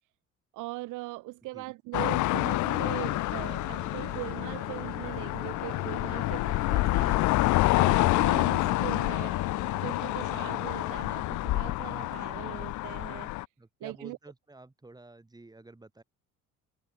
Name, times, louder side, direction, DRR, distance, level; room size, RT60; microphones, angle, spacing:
voice 1, 0.5-7.2 7.7-9.4 9.7-13.3 13.8-14.2, right 21 dB, 75° right, 0.6 m, -40 dB
sound 1, 1.9-13.5, left 19 dB, 65° left, 0.6 m, -28 dB
sound 2, 3.1-11.0, right 12 dB, 55° right, 1.3 m, -48 dB
voice 2, 13.6-16.0, right 2 dB, 10° right, 3.3 m, -50 dB
cardioid pair, 95°, 31 cm